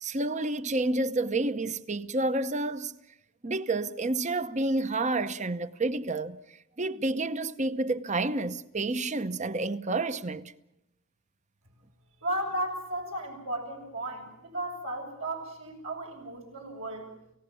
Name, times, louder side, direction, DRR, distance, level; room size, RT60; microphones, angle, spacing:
voice 1, 0.0-2.9 3.4-6.4 6.8-10.5, right 2 dB, 35° right, 0.9 m, -29 dB
voice 2, 12.2-17.1, right 1 dB, 75° right, 6.7 m, -35 dB
30.0 x 16.5 x 7.1 m
head